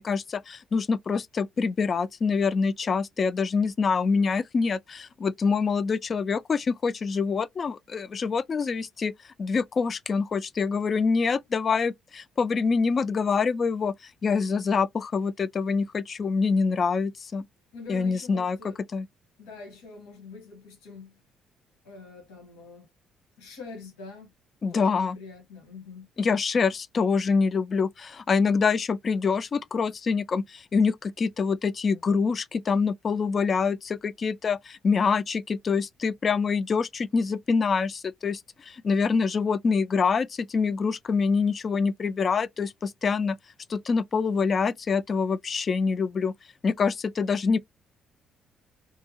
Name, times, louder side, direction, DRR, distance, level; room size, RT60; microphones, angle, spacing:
voice 1, 0.0-9.1 9.4-13.9 14.2-17.5 17.9-18.6 18.9-19.1 24.6-25.2 26.2-43.4 43.7-46.3 46.6-47.6, left 5 dB, 45° left, 0.3 m, -25 dB
voice 2, 17.7-18.8 19.4-21.2 21.8-22.9 23.4-24.3 24.7-26.1, left 4 dB, 75° left, 1.1 m, -44 dB
2.7 x 2.2 x 2.8 m
hypercardioid pair, 50°, 0 cm